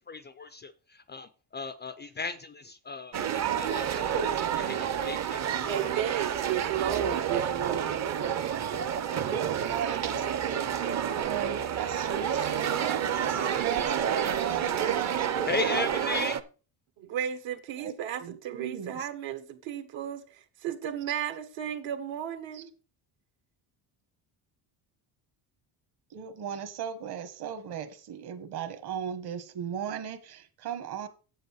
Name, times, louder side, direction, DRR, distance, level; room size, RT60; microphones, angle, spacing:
voice 1, 0.0-4.1 4.6-5.7 15.5-16.4, left 4 dB, 25° left, 0.3 m, -36 dB
sound 1, 3.1-16.4, right 9 dB, 35° right, 0.6 m, -29 dB
voice 2, 5.6-7.9 17.1-22.7, right 9 dB, 75° right, 1.5 m, -34 dB
voice 3, 6.8-7.8 9.2-15.9 17.8-17.9 18.2-19.1 22.5-22.6 26.1-31.1, right 8 dB, 55° right, 1.5 m, -36 dB
8.0 x 8.0 x 4.6 m
cardioid pair, 150°, 46 cm